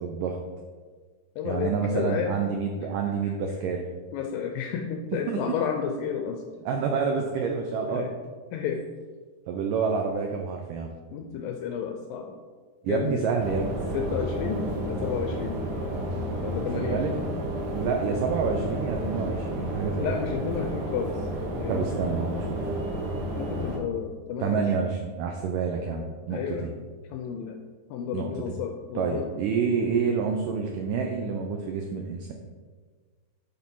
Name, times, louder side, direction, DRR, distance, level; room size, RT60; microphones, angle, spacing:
voice 1, 0.0-0.4 1.4-3.8 5.3-5.4 6.7-8.1 9.5-10.9 12.8-13.8 16.8-17.1 17.7-20.1 21.7-22.6 24.4-26.7 28.1-28.6 29.0-32.3, right 5 dB, 85° right, 3 dB, 1.9 m, -28 dB
voice 2, 1.4-2.3 3.2-3.3 4.1-6.6 7.9-8.1 8.5-8.8 11.1-12.4 12.9-13.2 13.9-15.6 16.4-17.0 20.0-21.2 21.6-22.0 23.3-24.7 26.3-26.7 27.1-27.6 27.9-29.3, left 7 dB, 80° left, 4 dB, 2.1 m, -31 dB
sound 1, 13.4-23.8, right 1 dB, 55° right, 2.3 m, -31 dB
10.0 x 5.4 x 4.6 m, 1.5 s
omnidirectional pair, 4.6 m